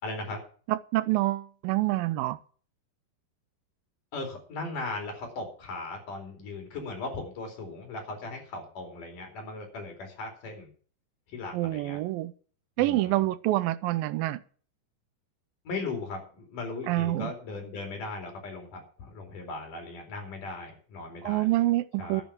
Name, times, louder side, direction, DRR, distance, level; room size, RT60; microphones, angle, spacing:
voice 1, 0.0-0.4 4.1-10.7 11.3-12.0 12.8-13.3 15.7-21.5 22.0-22.2, left 3 dB, 65° left, 5.8 m, -38 dB
voice 2, 0.7-2.4 11.5-12.3 12.8-14.4 16.9-17.3 21.2-22.2, right 17 dB, 85° right, 2.5 m, -27 dB
12.5 x 9.9 x 6.0 m
omnidirectional pair, 4.0 m